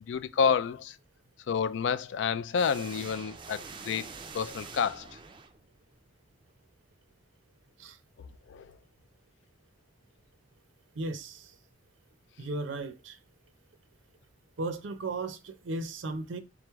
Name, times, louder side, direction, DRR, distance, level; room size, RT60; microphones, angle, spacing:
voice 1, 0.1-1.0 1.5-4.1 4.3-5.2 8.5-8.7, left 6 dB, 65° left, 0.3 m, -29 dB
sound 1, 2.5-5.9, right 4 dB, 25° right, 0.4 m, -45 dB
voice 2, 11.0-11.6 12.4-13.2 14.6-16.4, right 2 dB, 75° right, 0.5 m, -36 dB
3.7 x 3.1 x 3.4 m
head